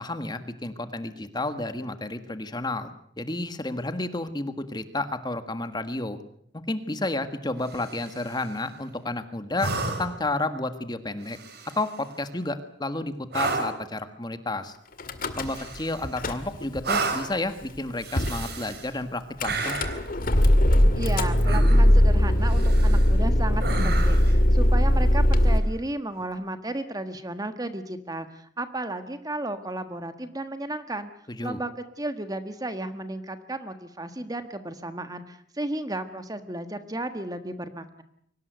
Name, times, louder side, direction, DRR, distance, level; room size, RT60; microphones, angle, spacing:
voice 1, 0.0-2.9 3.2-6.2 6.7-9.7 10.0-11.4 11.7-14.8 15.4-19.8 31.4-31.6, left 2 dB, 20° left, 9 dB, 1.6 m, -31 dB
sound 1, 7.6-8.4 9.6-10.3 11.3-12.0 13.3-13.9 15.4-16.2 16.8-17.4 18.0-18.9 19.4-20.1 21.4-22.0 22.5-23.1 23.6-24.4 26.2-26.3, right 3 dB, 55° right, 4.0 m, -32 dB
Car / Engine starting / Idling, 15.0-15.8 16.0-16.8 17.5-17.6 17.7-17.8 18.2-18.4 19.4-25.6, equal, 50° left, 2.0 m, -20 dB
voice 2, 20.9-31.1 31.4-38.0, right 1 dB, 20° right, 9 dB, 1.4 m, -34 dB
24.0 x 18.0 x 8.1 m, 0.68 s
head